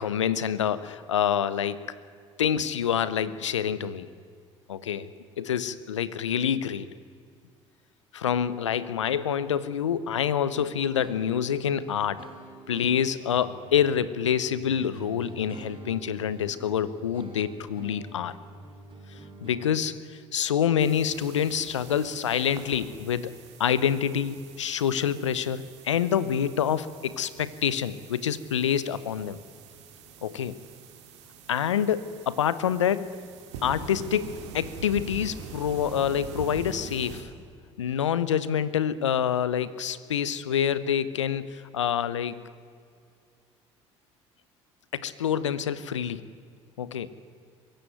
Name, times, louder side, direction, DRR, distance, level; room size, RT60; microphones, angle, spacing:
voice 1, 0.0-2.0 2.4-4.1 4.7-5.1 5.4-6.9 8.1-12.2 12.7-18.3 19.1-23.3 23.6-29.4 30.2-30.6 31.5-33.2 33.6-37.3 37.8-42.4 44.9-46.2 46.8-47.1, left 8 dB, 85° left, 16 dB, 0.8 m, -27 dB
sound 1, 10.6-19.7, right 3 dB, 35° right, 4.2 m, -46 dB
sound 2, 20.8-37.2, right 5 dB, 75° right, 2.9 m, -45 dB
23.0 x 16.0 x 9.4 m, 2.3 s
hypercardioid pair, 60°, 15 cm